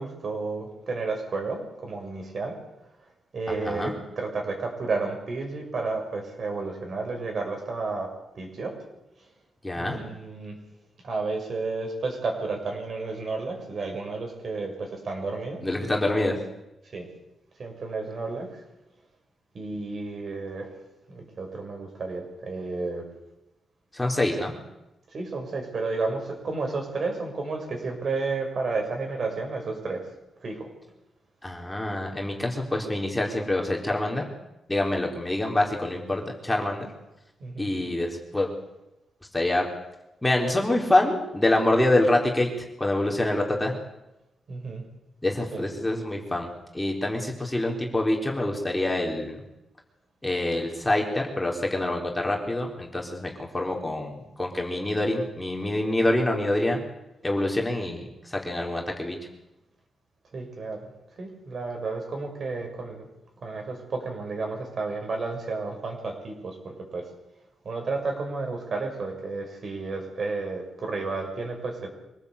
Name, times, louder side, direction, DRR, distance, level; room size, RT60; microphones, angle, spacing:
voice 1, 0.0-2.6 3.3-8.7 9.7-10.6 11.0-15.6 16.9-17.1 17.6-18.6 19.5-20.7 21.1-23.1 25.1-30.1 30.4-30.7 37.4-37.7 44.5-44.8 45.5-45.7 60.3-60.9 61.2-63.1 63.4-67.1 67.6-71.9, right 3 dB, 50° right, 3 dB, 6.7 m, -32 dB
voice 2, 3.5-4.0 9.6-10.0 15.6-16.4 23.9-24.6 31.4-34.3 34.7-36.9 37.6-38.5 39.3-39.6 40.2-42.5 42.8-43.7 45.2-49.4 50.2-56.8 57.2-59.2, left 1 dB, 10° left, 0 dB, 4.0 m, -26 dB
24.5 x 18.0 x 8.4 m, 0.92 s
cardioid pair, 115°, 0 cm